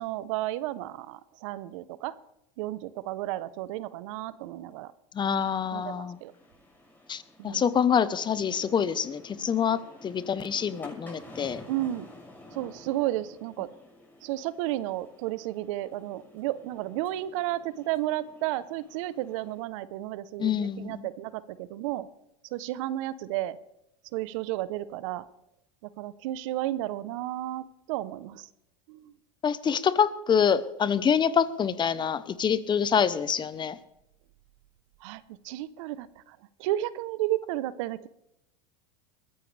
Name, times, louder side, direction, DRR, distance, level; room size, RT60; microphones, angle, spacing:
voice 1, 0.0-2.1 2.6-4.9 5.7-6.3 7.4-7.6 11.7-12.1 12.5-13.7 14.2-22.1 22.5-23.6 24.1-25.2 26.0-28.5 28.9-29.1 35.0-38.1, right 15 dB, 65° right, 16 dB, 0.9 m, -32 dB
voice 2, 5.1-6.2 7.1-11.6 20.4-21.1 29.4-33.8, left 7 dB, 25° left, 15 dB, 1.0 m, -26 dB
sound 1, 6.1-19.6, left 1 dB, 10° left, 6.3 m, -51 dB
22.0 x 14.5 x 3.4 m, 0.83 s
hypercardioid pair, 100°, 17 cm